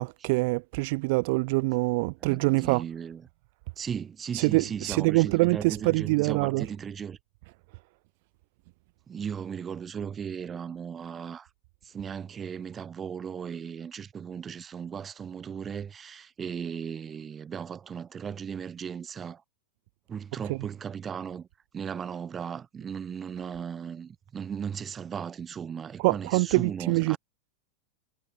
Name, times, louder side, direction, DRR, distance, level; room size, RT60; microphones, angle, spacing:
voice 1, 0.0-2.9 4.3-6.7 20.4-20.6 26.0-27.2, right 26 dB, 50° right, 0.3 m, -25 dB
voice 2, 2.2-3.2 3.8-7.2 9.1-11.5 11.8-19.4 20.1-21.5 21.7-27.2, right 7 dB, 20° right, 1.0 m, -37 dB
figure-of-eight pair, 90°, 0 cm